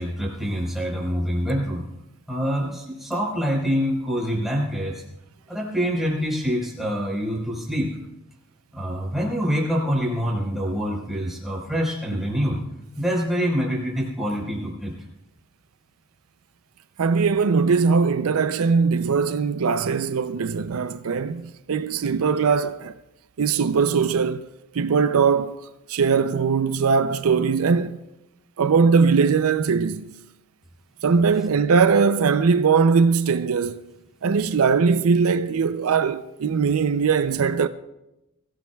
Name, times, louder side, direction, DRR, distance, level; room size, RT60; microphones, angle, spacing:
voice 1, 0.0-1.8 2.3-5.0 5.5-7.9 8.7-12.6 13.0-14.9, equal, ahead, 4.3 m, -25 dB
voice 2, 17.0-23.0 23.4-24.5 24.7-25.6 25.9-28.0 28.6-30.1 31.0-33.8 34.2-37.7, right 5 dB, 80° right, 0.5 m, -20 dB
22.5 x 15.5 x 2.3 m
head